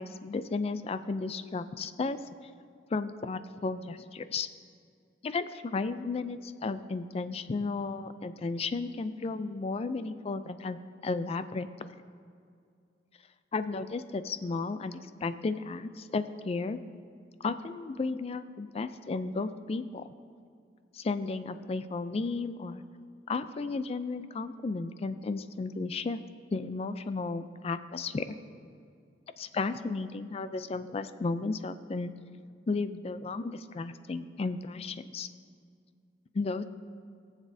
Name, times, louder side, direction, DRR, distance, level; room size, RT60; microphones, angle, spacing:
voice 1, 0.0-2.2 2.9-4.5 5.2-10.8 11.0-11.9 13.5-16.8 17.4-20.1 20.9-22.8 23.3-26.2 26.5-28.4 29.4-32.1 32.7-35.3 36.3-36.6, left 3 dB, 35° left, 12 dB, 0.3 m, -34 dB
17.5 x 7.4 x 2.7 m, 2.3 s
head